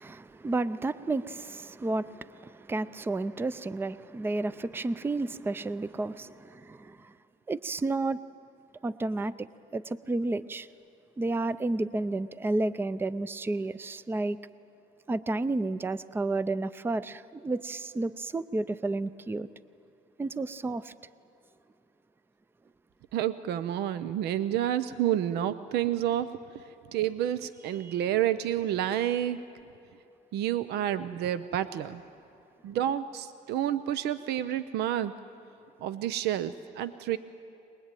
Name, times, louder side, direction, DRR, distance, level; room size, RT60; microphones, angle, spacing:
voice 1, 0.0-7.0 7.5-8.2 8.8-9.5 9.7-10.7 11.2-14.4 15.1-19.5 20.2-20.9 27.8-28.0, right 2 dB, 15° right, 15 dB, 0.5 m, -31 dB
voice 2, 23.1-26.3 26.9-29.4 30.3-32.0 32.6-35.1 35.8-37.2, right 11 dB, 75° right, 13 dB, 0.6 m, -29 dB
23.0 x 20.5 x 9.1 m, 2.6 s
cardioid pair, 110°, 17 cm